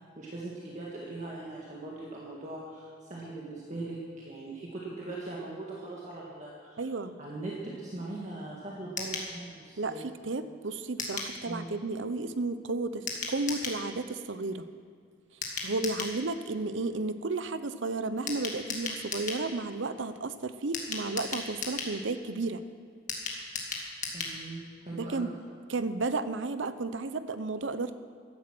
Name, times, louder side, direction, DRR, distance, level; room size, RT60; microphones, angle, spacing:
voice 1, 0.2-6.8 7.2-10.1 11.5-11.7 24.1-25.3, right 2 dB, 40° right, -4 dB, 1.8 m, -40 dB
voice 2, 6.8-7.1 9.8-14.6 15.6-22.6 24.9-25.3 25.7-28.0, right 3 dB, 80° right, 12 dB, 0.7 m, -33 dB
sound 1, 9.0-9.3 11.0-11.3 13.1-13.8 15.4-16.2 18.3-19.4 20.7-21.9 23.1-24.4 24.7-24.8 25.0-25.1, left 4 dB, 40° left, 2.1 m, -35 dB
15.0 x 11.5 x 6.2 m, 2.2 s
head